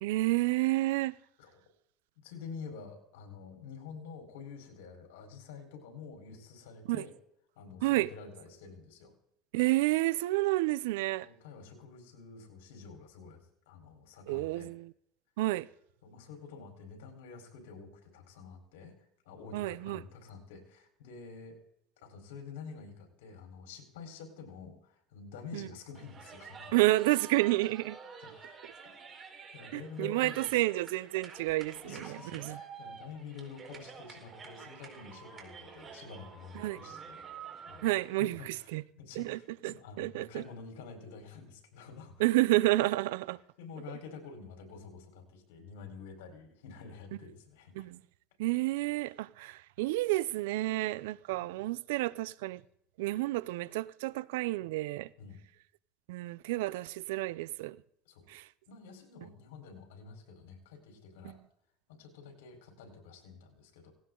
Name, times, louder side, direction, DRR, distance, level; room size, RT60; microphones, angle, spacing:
voice 1, 0.0-1.1 6.9-7.0 7.8-8.1 9.5-11.3 14.3-14.9 15.4-15.7 19.5-20.0 25.5-25.7 26.7-28.0 29.7-32.0 32.3-32.6 36.5-36.8 37.8-38.8 39.2-40.4 42.2-43.4 47.8-48.0 48.4-52.6 53.0-55.1 56.1-57.8 58.3-58.5, right 19 dB, 85° right, 0.6 m, -30 dB
voice 2, 2.2-7.1 7.6-9.1 11.2-14.7 16.0-18.9 19.2-21.6 22.0-26.7 28.2-28.6 29.5-30.6 31.8-38.7 39.0-42.3 43.6-47.9 51.6-51.7 55.2-55.4 58.0-58.3 58.7-61.4 61.9-63.9, left 5 dB, 90° left, 4.4 m, -48 dB
sound 1, 25.9-38.0, right 5 dB, 30° right, 4.6 m, -49 dB
18.5 x 17.5 x 3.9 m
supercardioid pair, 120°, 0 cm